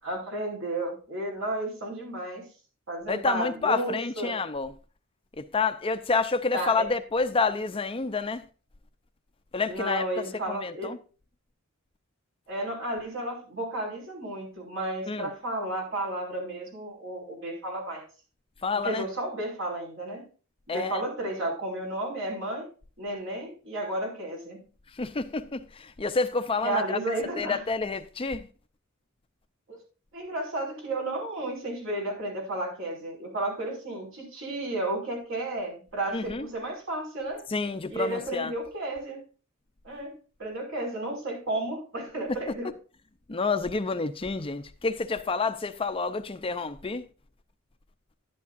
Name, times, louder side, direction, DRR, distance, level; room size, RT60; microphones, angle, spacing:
voice 1, 0.0-2.4 2.9-4.4 6.5-6.9 9.7-10.9 12.5-18.0 18.8-20.2 20.7-22.7 23.0-24.6 26.6-27.6 29.7-29.8 30.1-37.4 37.9-39.2 39.8-40.1 40.4-42.7, right 1 dB, 65° right, 5.5 m, -32 dB
voice 2, 3.1-4.7 5.4-8.4 9.5-10.0 10.5-11.0 15.1-15.3 18.6-19.0 20.7-21.0 25.0-27.0 27.4-28.5 36.1-36.5 37.5-38.5 43.3-47.0, left 4 dB, 25° left, 0.5 m, -29 dB
11.5 x 11.0 x 2.5 m
head